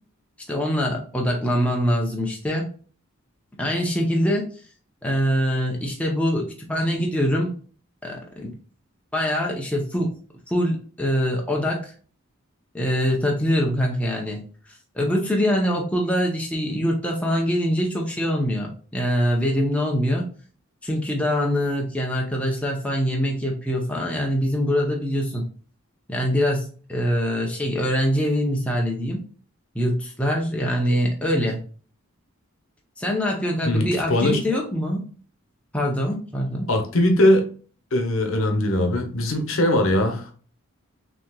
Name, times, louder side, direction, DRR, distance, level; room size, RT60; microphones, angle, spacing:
voice 1, 0.5-2.7 3.6-4.5 5.0-7.5 8.0-8.5 9.1-10.1 10.5-11.9 12.7-14.4 14.7-20.3 20.8-25.5 26.1-29.2 29.7-31.6 33.0-35.0 35.7-36.7, equal, 5° left, -1 dB, 0.7 m, -24 dB
voice 2, 33.6-34.4 36.7-37.4 37.9-40.3, left 1 dB, 70° left, 4 dB, 0.9 m, -20 dB
6.1 x 2.9 x 2.3 m, 0.41 s
head